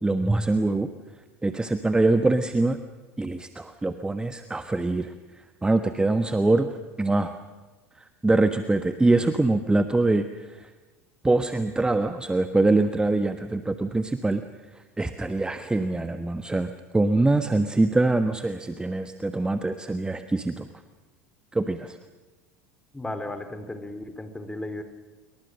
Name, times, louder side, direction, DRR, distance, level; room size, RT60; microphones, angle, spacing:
voice 1, 0.0-0.9 1.4-2.8 3.2-5.1 5.6-7.3 8.2-10.7 11.2-14.4 15.0-20.7 21.5-22.0, right 2 dB, 10° right, 9 dB, 1.3 m, -24 dB
voice 2, 22.9-24.8, left 1 dB, 10° left, 9 dB, 3.7 m, -35 dB
27.0 x 24.0 x 6.5 m, 1.3 s
hypercardioid pair, 80°, 8 cm